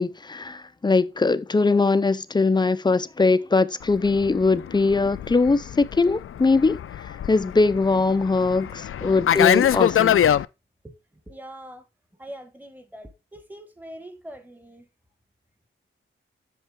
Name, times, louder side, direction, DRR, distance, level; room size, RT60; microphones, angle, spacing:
voice 1, 0.0-6.8 7.3-10.2, left 3 dB, 20° left, 0.4 m, -21 dB
Fixed-wing aircraft airplane, 3.9-10.4, left 10 dB, 85° left, 0.4 m, -24 dB
voice 2, 11.3-11.8 12.2-14.9, equal, 10° right, 1.1 m, -42 dB
8.2 x 6.6 x 3.5 m
wide cardioid pair, 175°, 21 cm